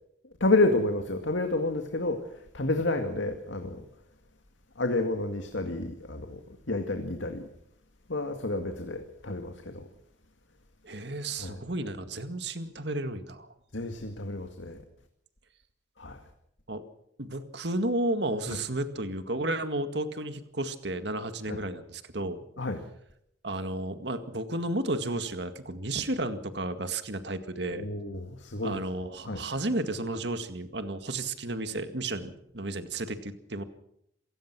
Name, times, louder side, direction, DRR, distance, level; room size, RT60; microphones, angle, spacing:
voice 1, 0.4-2.2 2.5-3.8 4.8-6.4 6.7-7.5 8.1-9.9 11.4-11.6 13.7-14.8 16.0-16.2 18.5-18.6 21.5-21.6 22.6-22.8 27.8-28.8 29.3-29.4, left 2 dB, 80° left, 5 dB, 2.2 m, -29 dB
voice 2, 10.8-13.5 16.7-16.8 17.2-22.4 23.4-27.9 28.6-33.6, right 2 dB, 60° right, 9 dB, 2.0 m, -32 dB
27.5 x 16.5 x 6.1 m, 0.76 s
head